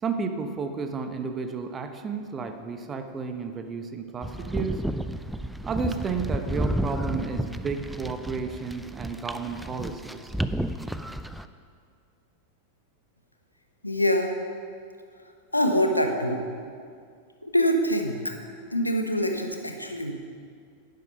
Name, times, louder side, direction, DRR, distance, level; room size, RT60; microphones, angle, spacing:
voice 1, 0.0-4.8 5.7-10.3, right 5 dB, 20° right, 7 dB, 0.9 m, -32 dB
sound 1, 4.2-11.4, right 1 dB, 5° right, 0.4 m, -31 dB
voice 2, 13.8-14.3 15.5-16.5 17.4-18.3 18.7-20.1, equal, 85° left, 5 dB, 1.1 m, -24 dB
10.5 x 10.5 x 5.3 m, 2.2 s
figure-of-eight pair, 90°, 0 cm